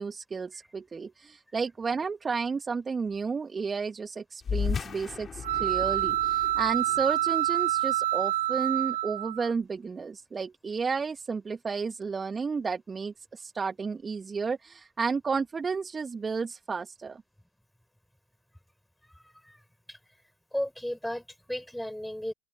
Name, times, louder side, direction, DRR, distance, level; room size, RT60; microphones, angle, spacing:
voice 1, 0.0-17.2, right 5 dB, 20° right, 2.2 m, -32 dB
sound 1, 4.4-9.3, left 6 dB, 30° left, 4.0 m, -36 dB
sound 2, 5.4-9.5, right 15 dB, 70° right, 0.7 m, -27 dB
voice 2, 19.0-19.6 19.9-20.0 20.5-22.3, left 1 dB, 5° left, 5.7 m, -35 dB
open air
hypercardioid pair, 80°, 0 cm